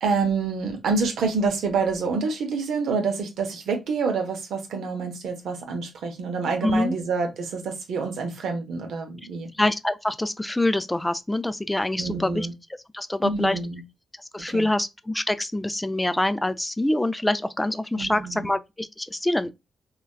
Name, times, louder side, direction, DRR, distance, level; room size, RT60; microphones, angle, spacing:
voice 1, 0.0-9.5 12.0-12.5 13.2-13.8 14.4-14.7 18.0-18.5, right 4 dB, 75° right, 0.7 m, -27 dB
voice 2, 6.6-7.0 9.6-12.5 12.9-13.6 14.3-19.5, left 1 dB, 15° left, 0.4 m, -25 dB
3.2 x 2.3 x 2.2 m
supercardioid pair, 45°, 0 cm